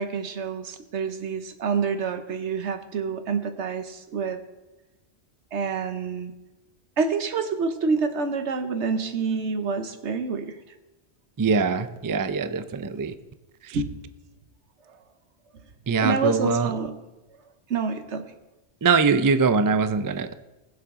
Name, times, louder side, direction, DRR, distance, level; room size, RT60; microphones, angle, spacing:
voice 1, 0.0-4.4 5.5-6.3 7.0-10.6 13.7-13.9 16.0-16.9 17.7-18.2, right 5 dB, 80° right, 8 dB, 1.2 m, -27 dB
voice 2, 11.4-13.1 15.9-16.7 18.8-20.3, right 4 dB, 35° right, 11 dB, 0.3 m, -22 dB
20.5 x 7.4 x 3.7 m, 1.1 s
omnidirectional pair, 1.2 m